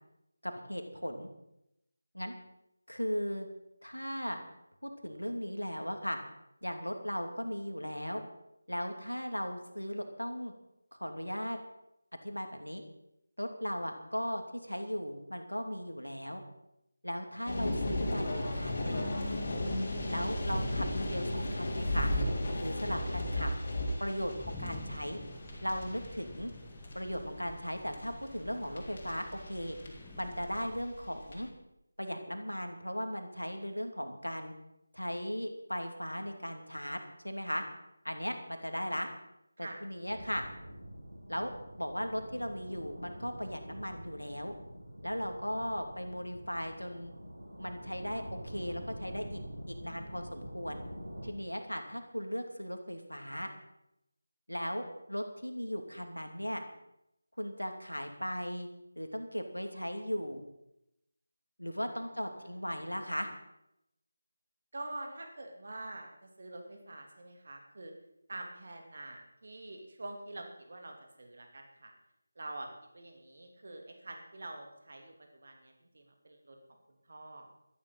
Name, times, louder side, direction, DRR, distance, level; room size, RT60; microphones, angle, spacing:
voice 1, 0.4-1.3 2.1-2.3 2.9-3.5 3.8-4.4 4.8-6.2 6.6-8.2 8.7-10.5 11.0-11.6 12.2-12.8 13.4-16.4 17.0-18.2 18.5-19.2 20.1-22.1 22.6-23.5 24.0-25.2 25.6-26.5 26.9-29.8 30.2-31.5 32.0-34.5 34.9-37.6 38.0-39.1 39.6-40.4 41.3-41.5 41.8-44.5 45.0-47.1 47.6-49.4 49.7-50.8 51.2-53.5 54.5-56.6 57.4-58.7 59.0-60.4 61.6-63.3, equal, 85° left, 5 dB, 2.6 m, -37 dB
sound 1, 17.5-31.4, left 1 dB, 40° left, 3.8 m, -35 dB
sound 2, 24.2-30.8, left 2 dB, 10° left, 1.3 m, -49 dB
Lava Ambience, 40.1-51.3, equal, 65° right, 6.4 m, -46 dB
voice 2, 64.7-67.9 68.3-71.9 72.3-72.7 72.9-76.6 77.1-77.5, right 2 dB, 45° right, 3 dB, 2.9 m, -46 dB
14.0 x 13.5 x 5.6 m, 0.84 s
figure-of-eight pair, 160°, 0 cm